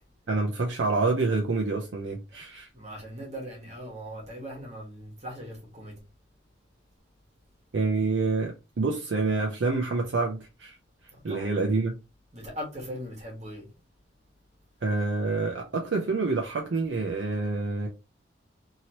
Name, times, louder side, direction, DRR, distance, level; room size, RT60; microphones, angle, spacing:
voice 1, 0.3-2.7 7.7-10.8 11.2-12.0 14.8-17.9, right 3 dB, 75° right, 0.5 m, -27 dB
voice 2, 2.7-6.0 11.3-11.5 12.3-13.7, equal, 35° right, 1.3 m, -39 dB
2.9 x 2.8 x 2.8 m
head